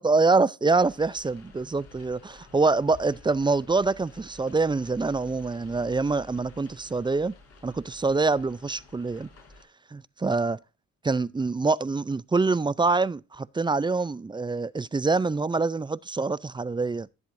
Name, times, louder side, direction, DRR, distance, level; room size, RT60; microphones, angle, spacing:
voice 1, 0.0-7.3 7.6-9.3 9.9-10.6 11.0-17.1, right 3 dB, 15° right, 0.4 m, -25 dB
sound 1, 0.7-9.6, left 2 dB, 55° left, 5.8 m, -51 dB
14.5 x 7.7 x 2.6 m
cardioid pair, 90°, 30 cm